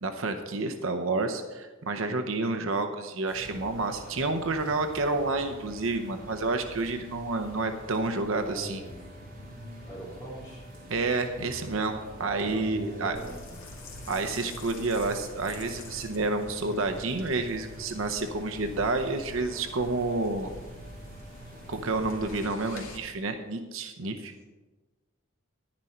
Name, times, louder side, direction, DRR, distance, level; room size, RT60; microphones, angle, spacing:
voice 1, 0.0-8.8 10.9-13.2 14.1-20.5 21.7-24.3, right 3 dB, 65° right, 6 dB, 0.8 m, -29 dB
sound 1, 3.3-22.4, equal, 40° right, 3.5 m, -46 dB
voice 2, 8.4-9.0 9.9-10.7 12.3-13.6 23.9-24.4, right 1 dB, 15° left, -6 dB, 3.8 m, -42 dB
sound 2, 13.1-23.0, left 1 dB, 70° left, 2.1 m, -46 dB
10.5 x 10.5 x 4.4 m, 1.2 s
head